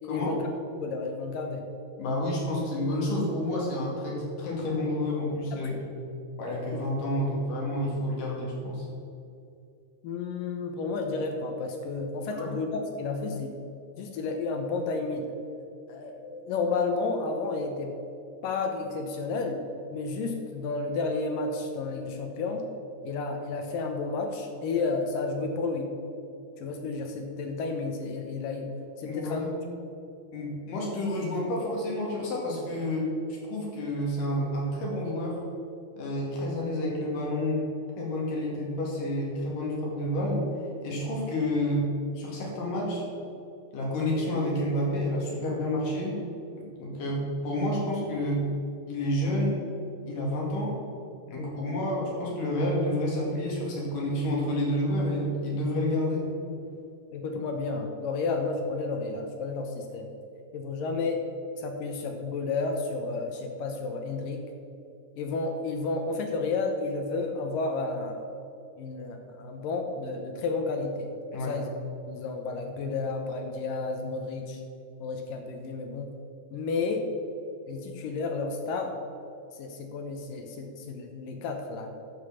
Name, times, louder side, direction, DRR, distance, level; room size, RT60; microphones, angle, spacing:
voice 1, 0.0-0.5 0.8-1.7 5.5-5.8 10.0-12.7 13.0-13.6 14.0-15.3 15.9-17.9 18.4-19.6 19.9-22.7 23.0-25.9 26.6-28.7 29.0-29.4 51.4-51.7 57.1-60.1 60.5-61.2 61.6-64.5 65.2-68.2 68.8-71.1 71.5-71.7 72.1-74.6 75.0-76.1 76.5-77.0 77.7-78.9 79.5-81.9, left 3 dB, 75° left, 4 dB, 2.2 m, -31 dB
voice 2, 2.0-5.9 6.4-8.9 12.4-12.5 29.0-29.5 30.3-35.4 36.0-37.6 38.0-40.5 40.8-41.9 42.2-43.0 43.7-46.2 46.8-48.5 48.9-49.6 50.0-50.8 51.3-56.3 71.3-71.6, left 1 dB, 60° left, -3 dB, 3.7 m, -29 dB
11.5 x 5.7 x 7.3 m, 2.6 s
omnidirectional pair, 4.7 m